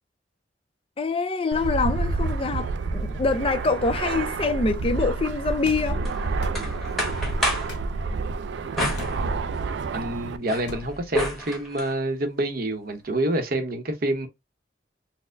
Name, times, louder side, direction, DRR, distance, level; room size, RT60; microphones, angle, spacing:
voice 1, 1.0-6.0, left 3 dB, 30° left, 0.5 m, -25 dB
Fixed-wing aircraft airplane, 1.5-10.4, right 3 dB, 75° right, 0.4 m, -29 dB
sound 1, 5.6-5.9 6.4-6.6 7.7-7.9 8.9-9.2 10.7-10.9, left 2 dB, 70° left, 0.9 m, -37 dB
sound 2, 6.0-7.8 8.8-9.8 10.2-11.9, left 1 dB, ahead, 1.2 m, -30 dB
voice 2, 9.9-14.3, right 1 dB, 55° right, 0.8 m, -27 dB
4.2 x 2.1 x 2.5 m
head